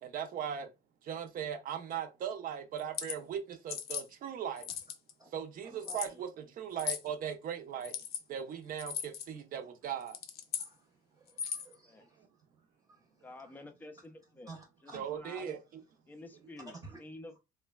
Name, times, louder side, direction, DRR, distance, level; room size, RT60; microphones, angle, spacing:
voice 1, 0.0-0.7 1.0-4.7 5.3-7.9 8.3-10.2 14.9-15.6, right 8 dB, 55° right, 0.6 m, -38 dB
sound 1, 2.8-3.2 3.7-4.1 4.6-5.1 5.8-6.1 6.8-7.1 7.8-8.2 8.8-9.3 10.0-10.7 11.3-11.7, left 8 dB, 70° left, 0.5 m, -38 dB
voice 2, 5.6-6.1 10.6-10.9 11.1-12.3 12.9-13.5 14.5-15.2 16.7-17.0, right 2 dB, 20° right, 0.7 m, -52 dB
voice 3, 13.2-14.5 14.8-15.6 16.1-17.4, left 2 dB, 10° left, 0.4 m, -50 dB
3.1 x 2.2 x 2.2 m
cardioid pair, 110°, 17 cm